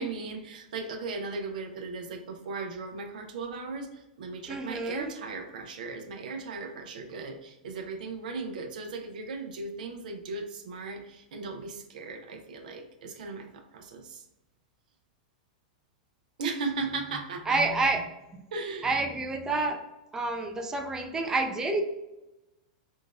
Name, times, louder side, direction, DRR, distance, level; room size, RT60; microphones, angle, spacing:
voice 1, 0.0-14.2 16.4-17.6 18.5-18.9, right 3 dB, 75° right, 5 dB, 0.5 m, -37 dB
voice 2, 4.5-5.1 17.5-18.0 18.8-19.8 20.1-21.8, right 3 dB, 15° right, 5 dB, 0.4 m, -28 dB
3.8 x 2.4 x 2.4 m, 0.98 s
hypercardioid pair, 120°, 4 cm